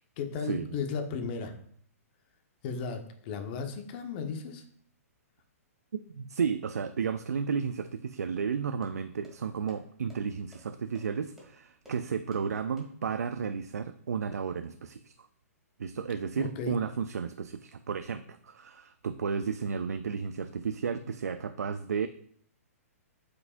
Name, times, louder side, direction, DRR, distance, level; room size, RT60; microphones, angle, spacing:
voice 1, 0.2-1.6 2.6-4.7 16.4-16.8, left 5 dB, 40° left, 5 dB, 1.0 m, -35 dB
voice 2, 6.1-15.1 15.8-22.1, right 6 dB, 80° right, 10 dB, 0.4 m, -33 dB
sound 1, 8.4-13.3, equal, 5° right, 1.9 m, -58 dB
8.1 x 4.8 x 2.5 m, 0.63 s
hypercardioid pair, 125°, 8 cm